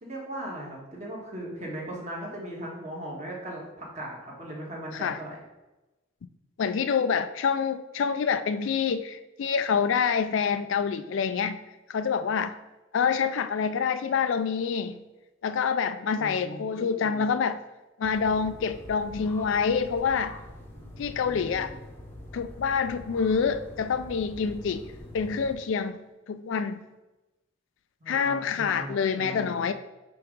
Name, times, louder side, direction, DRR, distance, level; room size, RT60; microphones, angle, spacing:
voice 1, 0.0-5.3 16.2-17.3 20.7-21.8 28.0-29.6, right 1 dB, 35° right, -3 dB, 1.4 m, -39 dB
voice 2, 6.6-11.6 11.9-12.5 12.9-15.0 15.4-17.6 18.0-20.4 21.0-21.8 22.3-24.8 25.1-26.0 26.3-26.8 28.1-29.7, left 6 dB, 65° left, 11 dB, 0.3 m, -27 dB
sound 1, 18.0-25.6, left 1 dB, 10° left, 0.8 m, -45 dB
5.8 x 3.5 x 5.2 m, 1.0 s
head